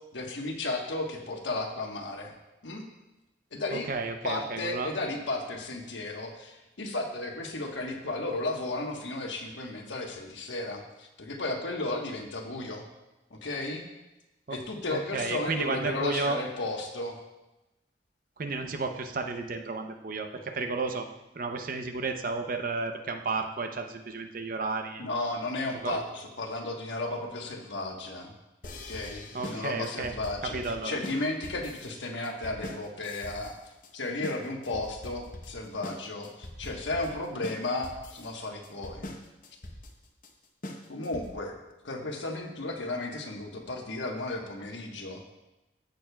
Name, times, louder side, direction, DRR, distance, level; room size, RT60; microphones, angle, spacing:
voice 1, 0.1-2.3 2.6-2.8 3.5-3.9 4.2-12.8 13.3-13.8 14.5-17.2 25.0-28.3 28.8-33.6 33.9-39.1 40.9-41.5 41.8-45.3, left 2 dB, 90° left, 1 dB, 1.3 m, -34 dB
voice 2, 3.7-4.9 14.5-14.6 14.9-16.4 18.4-21.1 21.4-25.0 25.8-26.0 29.3-30.1 30.4-31.0, right 3 dB, 50° right, 5 dB, 0.7 m, -32 dB
sound 1, 28.6-41.5, left 1 dB, 45° left, 0.9 m, -43 dB
14.5 x 6.5 x 2.3 m, 0.99 s
head